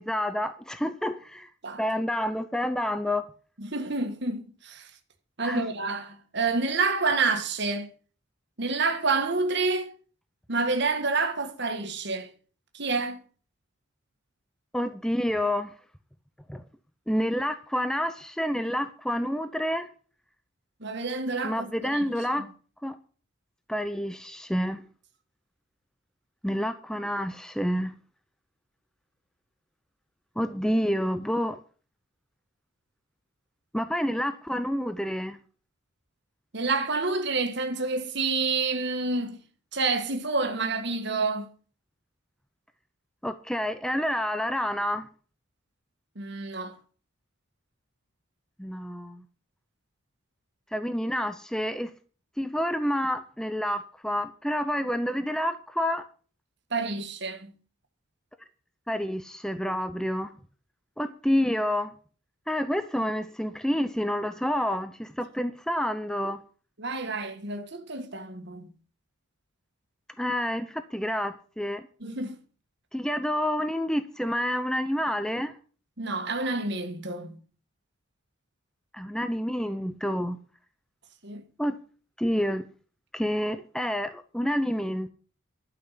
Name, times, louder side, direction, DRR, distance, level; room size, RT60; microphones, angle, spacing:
voice 1, 0.0-1.5 1.8-3.3 5.4-5.7 14.7-15.7 16.5-16.6 17.1-19.9 21.4-22.4 22.8-23.0 23.7-24.8 26.4-27.9 30.4-31.6 33.7-35.4 43.2-45.1 48.6-49.2 50.7-51.9 52.4-56.0 58.9-60.3 61.0-61.9 62.5-66.4 70.2-71.8 72.9-75.5 78.9-80.4 81.6-81.8 82.2-82.7 83.1-85.1, equal, 5° left, 0.5 m, -28 dB
voice 2, 3.6-4.9 5.4-7.9 8.6-9.9 10.5-12.3 12.7-13.2 20.8-22.0 22.3-22.4 36.5-39.4 39.7-41.5 46.1-46.7 56.7-57.5 66.8-68.7 72.0-72.4 76.0-77.4 81.2-81.4, right 3 dB, 55° right, 1.6 m, -28 dB
12.0 x 5.7 x 8.2 m
head